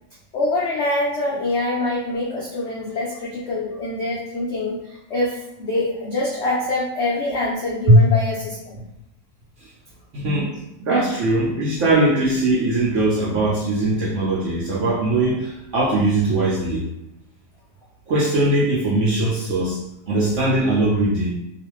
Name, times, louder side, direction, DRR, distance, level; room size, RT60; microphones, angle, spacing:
voice 1, 0.3-8.7, left 2 dB, 85° left, -5 dB, 0.6 m, -25 dB
voice 2, 10.1-16.9 18.1-19.8 20.1-21.3, right 2 dB, 70° right, -6 dB, 0.7 m, -20 dB
2.4 x 2.4 x 3.0 m, 0.86 s
omnidirectional pair, 1.8 m